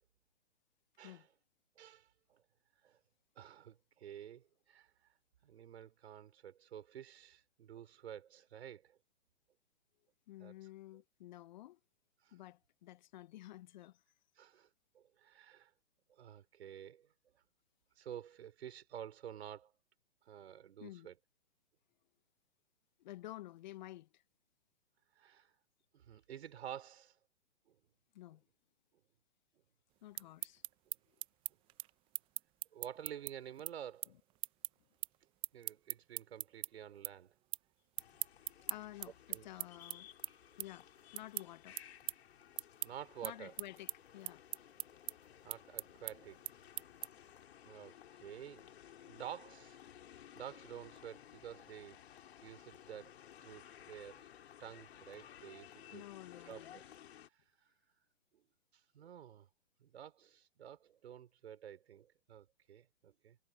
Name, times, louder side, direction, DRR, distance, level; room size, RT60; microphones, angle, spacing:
voice 1, 1.8-2.4 2.8-3.0 3.4-4.9 5.4-9.0 10.4-10.5 12.2-12.4 14.4-14.7 14.9-15.7 16.1-17.1 18.0-19.7 20.3-21.1 25.1-25.5 25.9-27.2 27.7-27.8 32.7-34.1 35.5-37.3 39.3-39.5 42.8-43.5 45.4-46.4 47.6-48.7 49.0-49.8 50.3-52.0 52.4-53.1 53.4-54.3 54.6-56.0 56.4-56.8 58.9-59.5 59.8-63.4, right 9 dB, 55° right, 5.0 m, -50 dB
voice 2, 10.3-11.8 12.3-14.0 20.8-21.1 23.0-24.2 28.1-28.4 30.0-30.6 38.6-40.1 40.6-40.9 41.1-41.8 43.2-44.4 55.9-56.8, left 15 dB, 35° left, 0.9 m, -51 dB
sound 1, 30.0-36.7 37.0-37.7 37.9-47.3, right 18 dB, 15° right, 0.6 m, -42 dB
sound 2, 38.0-57.3, left 10 dB, 55° left, 5.0 m, -57 dB
figure-of-eight pair, 130°, 38 cm